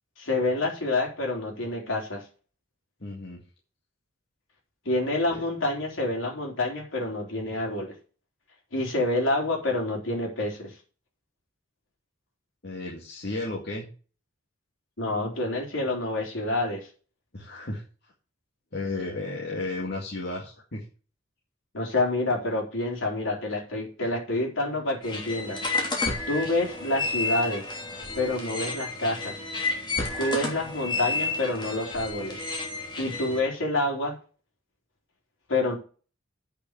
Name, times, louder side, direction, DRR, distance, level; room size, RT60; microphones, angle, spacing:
voice 1, 0.2-2.2 4.9-7.9 8.7-10.7 15.0-16.9 21.7-25.6 26.3-27.7 28.2-29.4 30.2-32.4 33.0-34.1 35.5-35.8, left 2 dB, 70° left, 0 dB, 3.9 m, -28 dB
voice 2, 3.0-3.4 5.3-5.4 12.6-13.9 17.3-17.8 18.7-20.8, left 2 dB, 55° left, -3 dB, 2.2 m, -33 dB
sound 1, 25.0-33.4, left 3 dB, 25° left, 3.1 m, -31 dB
8.4 x 5.9 x 6.6 m, 0.37 s
head